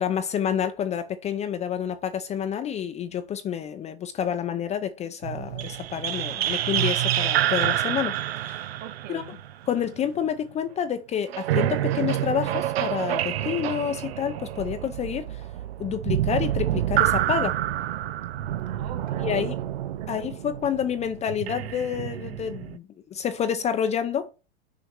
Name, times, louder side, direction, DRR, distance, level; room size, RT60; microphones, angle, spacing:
voice 1, 0.0-8.6 9.1-9.2 9.7-15.4 15.8-17.6 19.2-19.5 20.1-24.3, left 8 dB, 20° left, 0.6 m, -29 dB
sound 1, 5.2-10.3 11.3-22.8, right 12 dB, 90° right, 0.7 m, -28 dB
voice 2, 8.8-9.4 18.5-19.7 20.0-20.3, right 9 dB, 50° right, 2.6 m, -42 dB
6.5 x 5.6 x 4.8 m
hypercardioid pair, 125°, 30 cm